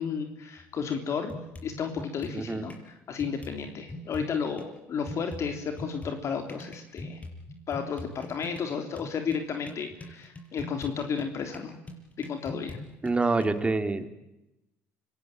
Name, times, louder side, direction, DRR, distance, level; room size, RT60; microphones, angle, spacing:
voice 1, 0.0-1.4 1.6-7.2 7.7-11.7 12.2-12.8, left 6 dB, 50° left, 6 dB, 3.4 m, -33 dB
sound 1, 0.6-0.7 1.3-2.9 3.2-4.7 5.1-13.5, left 1 dB, 25° left, 6.3 m, -42 dB
voice 2, 2.3-2.7 13.0-14.1, right 3 dB, 20° right, 8 dB, 2.9 m, -26 dB
25.0 x 18.5 x 9.1 m, 0.93 s
supercardioid pair, 80°, 6 cm